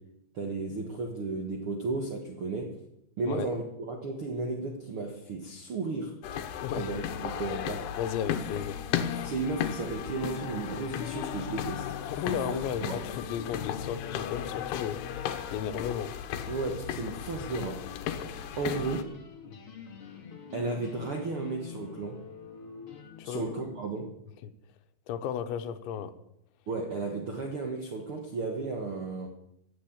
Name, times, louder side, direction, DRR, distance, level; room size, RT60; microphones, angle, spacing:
voice 1, 0.3-2.8 3.2-6.1 6.8-7.9 9.2-11.9 12.2-13.0 16.5-17.8 18.6-19.1 20.5-22.2 23.2-24.1 26.7-29.3, right 3 dB, 85° right, 2 dB, 1.2 m, -34 dB
sound 1, 6.2-19.0, left 9 dB, 75° left, 2.9 m, -35 dB
voice 2, 8.0-8.8 12.1-15.0 15.5-16.1 23.2-23.4 24.4-24.5 25.1-26.1, left 9 dB, 90° left, 9 dB, 3.4 m, -34 dB
sound 2, 18.2-23.8, left 6 dB, 45° left, 1.7 m, -46 dB
16.0 x 8.6 x 8.8 m, 0.81 s
omnidirectional pair, 5.1 m